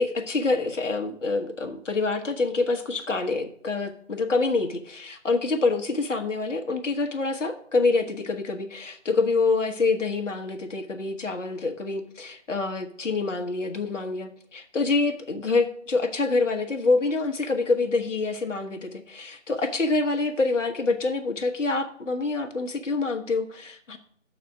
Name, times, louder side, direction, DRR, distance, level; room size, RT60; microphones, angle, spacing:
voice 1, 0.0-24.0, left 3 dB, 70° left, 4 dB, 1.3 m, -26 dB
7.3 x 4.2 x 6.1 m, 0.62 s
figure-of-eight pair, 165°, 38 cm